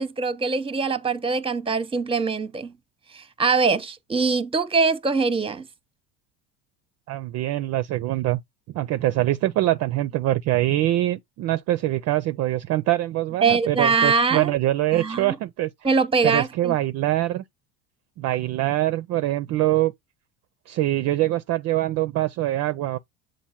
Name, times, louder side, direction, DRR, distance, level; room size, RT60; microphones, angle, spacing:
voice 1, 0.0-2.7 3.1-5.6 13.4-14.5 14.9-15.3 15.8-16.8, right 4 dB, 15° right, 0.7 m, -23 dB
voice 2, 7.1-8.4 8.7-15.7 16.2-17.4 18.2-19.9 20.7-23.0, right 15 dB, 45° right, 0.4 m, -24 dB
7.2 x 2.5 x 5.6 m
supercardioid pair, 105°, 38 cm